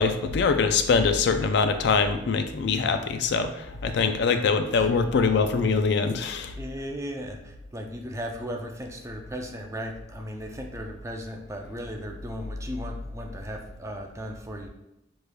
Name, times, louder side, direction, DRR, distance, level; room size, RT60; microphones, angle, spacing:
voice 1, 0.0-6.5, left 5 dB, 65° left, 8 dB, 0.4 m, -23 dB
voice 2, 3.9-4.2 4.7-4.9 6.5-14.7, equal, 15° right, 2 dB, 0.4 m, -36 dB
6.5 x 3.0 x 2.2 m, 0.91 s
head